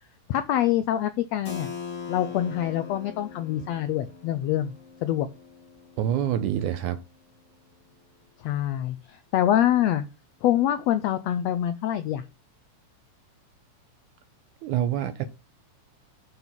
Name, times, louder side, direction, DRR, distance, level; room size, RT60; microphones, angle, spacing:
voice 1, 0.3-1.7 2.1-4.7 5.0-5.3 8.4-10.0 10.4-12.2, left 11 dB, 90° left, 1.5 m, -25 dB
Keyboard (musical), 1.4-7.0, left 6 dB, 30° left, 1.5 m, -41 dB
voice 2, 6.0-7.0 14.6-15.2, right 10 dB, 75° right, 2.0 m, -26 dB
9.0 x 4.0 x 7.2 m
omnidirectional pair, 3.7 m